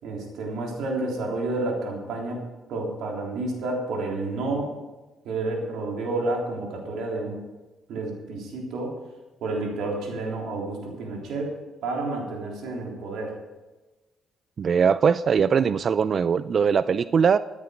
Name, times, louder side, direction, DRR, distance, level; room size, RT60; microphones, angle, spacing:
voice 1, 0.0-2.4 2.7-4.7 5.2-7.4 7.9-8.9 9.4-11.5 11.8-13.3, right 2 dB, 80° right, -1 dB, 3.5 m, -30 dB
voice 2, 14.6-17.4, right 6 dB, 50° right, 15 dB, 0.3 m, -21 dB
14.5 x 9.7 x 5.2 m, 1.2 s
cardioid pair, 90°, 0 cm